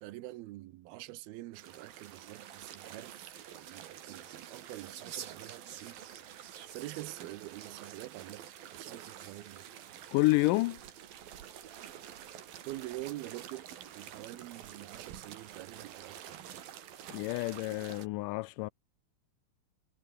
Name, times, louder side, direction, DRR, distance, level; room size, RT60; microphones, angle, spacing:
voice 1, 0.0-3.2 3.5-6.0 6.7-9.6 12.7-16.6, right 16 dB, 90° right, 2.8 m, -46 dB
sound 1, 1.5-18.1, right 10 dB, 70° right, 3.7 m, -49 dB
sound 2, 3.6-11.4 12.0-12.6, right 9 dB, 55° right, 1.6 m, -52 dB
voice 2, 10.1-10.8 17.1-18.7, left 21 dB, 85° left, 1.9 m, -29 dB
omnidirectional pair, 4.3 m